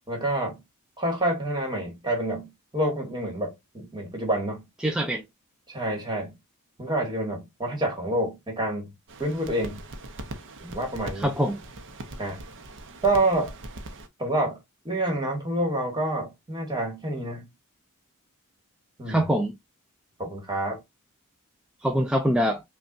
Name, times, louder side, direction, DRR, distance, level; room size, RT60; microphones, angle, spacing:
voice 1, 0.1-0.6 1.0-4.6 5.7-6.3 6.8-8.9 9.2-9.8 10.7-11.3 12.2-12.4 13.0-13.5 14.2-14.6 14.8-17.5 19.0-19.2 20.2-20.8, right 1 dB, 20° right, 1.6 m, -28 dB
voice 2, 4.8-5.2 11.2-11.6 19.1-19.5 21.8-22.6, equal, 5° right, 0.4 m, -24 dB
sound 1, 9.1-14.1, right 1 dB, 60° right, 0.7 m, -41 dB
5.3 x 2.4 x 2.5 m
head